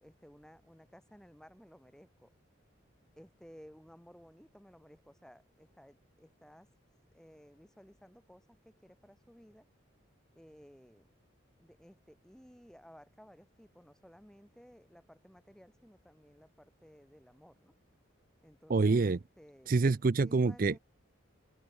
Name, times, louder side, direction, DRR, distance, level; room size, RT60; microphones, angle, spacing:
voice 1, 0.0-2.3 3.2-6.7 7.1-9.7 10.4-11.1 11.6-17.7 18.4-19.8 20.2-20.8, equal, 5° left, 2.6 m, -57 dB
voice 2, 18.7-19.2 19.7-20.8, right 3 dB, 40° right, 0.4 m, -26 dB
head